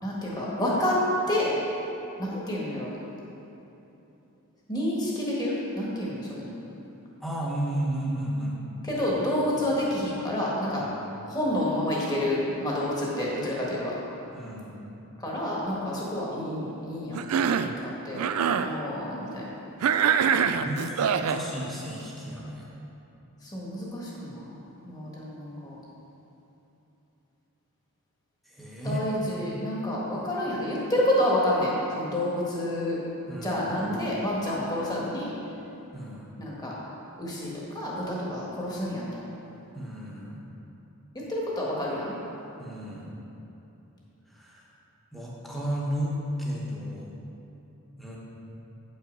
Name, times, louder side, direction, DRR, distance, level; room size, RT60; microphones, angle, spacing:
voice 1, 0.0-1.0 1.3-1.6 2.2-2.9 4.7-6.5 8.8-10.8 11.3-13.9 15.2-17.5 17.8-18.2 18.6-19.5 23.4-24.6 24.8-25.8 28.8-33.0 33.4-35.3 36.4-36.7 37.2-39.2 41.1-42.1, left 1 dB, 15° left, -5 dB, 1.4 m, -29 dB
voice 2, 7.2-8.6 9.1-9.3 9.6-9.7 10.7-10.9 14.3-14.9 20.4-22.9 28.4-29.0 33.3-33.9 35.9-36.4 39.7-40.5 42.6-43.1 44.3-44.7 45.1-47.2 48.0-48.2, right 1 dB, ahead, -5 dB, 1.0 m, -34 dB
Cough, 17.2-17.8 18.1-18.7 19.8-21.4, right 7 dB, 80° right, 0.3 m, -24 dB
8.3 x 5.5 x 5.2 m, 3.0 s
head